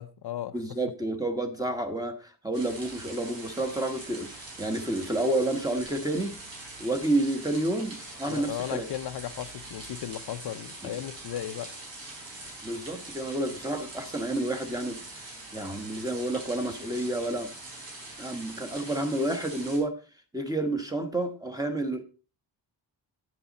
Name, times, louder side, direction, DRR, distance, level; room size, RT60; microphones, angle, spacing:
voice 1, 0.0-0.6 8.3-11.8, left 11 dB, 65° left, 0.6 m, -36 dB
voice 2, 0.5-6.4 6.8-8.8 10.8-10.9 12.6-15.0 15.5-17.5 18.2-20.0 20.3-22.0, right 1 dB, 10° right, 1.0 m, -30 dB
sound 1, 2.5-19.8, right 2 dB, 85° right, 4.5 m, -43 dB
9.6 x 7.8 x 4.0 m
wide cardioid pair, 155°, 43 cm